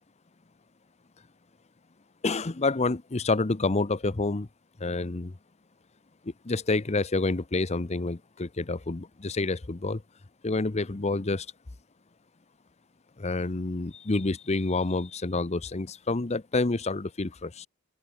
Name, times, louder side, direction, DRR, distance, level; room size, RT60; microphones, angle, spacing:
voice 1, 2.2-4.5 4.8-5.3 6.4-10.0 10.4-11.5 13.2-17.7, left 3 dB, 30° left, 0.7 m, -28 dB
open air
head